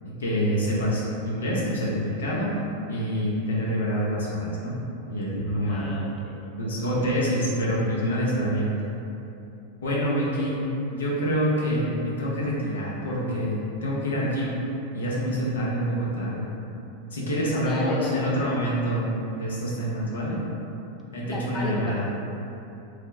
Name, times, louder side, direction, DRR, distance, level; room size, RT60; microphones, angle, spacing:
voice 1, 0.0-2.5 2.9-4.8 5.1-5.9 6.6-8.9 9.8-14.6 14.9-16.5 17.1-20.4 21.1-22.0, equal, 80° left, -6 dB, 0.8 m, -26 dB
voice 2, 5.6-6.4 7.3-7.4 10.1-10.5 17.6-18.2 21.2-22.0, left 2 dB, 20° left, -2 dB, 0.4 m, -34 dB
3.0 x 2.2 x 4.0 m, 2.8 s
hypercardioid pair, 100°, 0 cm